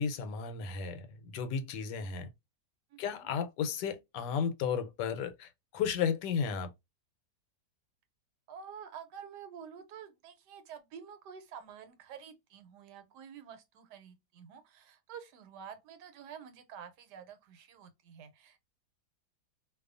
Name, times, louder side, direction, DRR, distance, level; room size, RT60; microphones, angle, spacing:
voice 1, 0.0-2.3 3.0-6.7, left 6 dB, 85° left, 1.2 m, -34 dB
voice 2, 2.9-3.3 8.5-18.6, right 7 dB, 80° right, 1.2 m, -49 dB
2.6 x 2.3 x 2.3 m
omnidirectional pair, 1.8 m